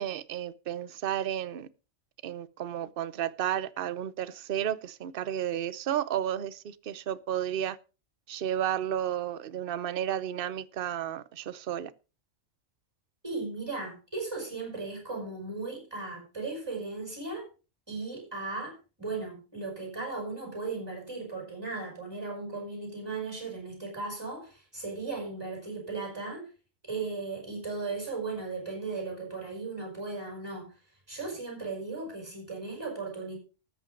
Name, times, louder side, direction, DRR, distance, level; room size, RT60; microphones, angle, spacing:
voice 1, 0.0-1.7 2.2-7.8 8.3-11.9, right 10 dB, 50° right, 0.9 m, -32 dB
voice 2, 13.2-17.5 17.9-26.5 26.9-30.8 31.1-33.4, right 3 dB, 20° right, 6.4 m, -36 dB
13.5 x 8.5 x 5.2 m
omnidirectional pair, 1.3 m